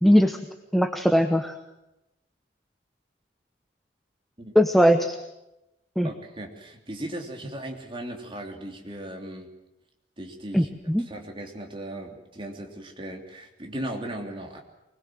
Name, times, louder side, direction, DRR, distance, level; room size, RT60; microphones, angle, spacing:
voice 1, 0.0-0.4 0.7-1.5 4.5-5.1 6.0-6.1 10.5-11.0, equal, ahead, 7 dB, 0.9 m, -20 dB
voice 2, 6.0-9.5 10.2-10.7 11.1-14.6, right 1 dB, 30° right, 2 dB, 3.1 m, -37 dB
24.5 x 20.5 x 7.7 m, 0.93 s
head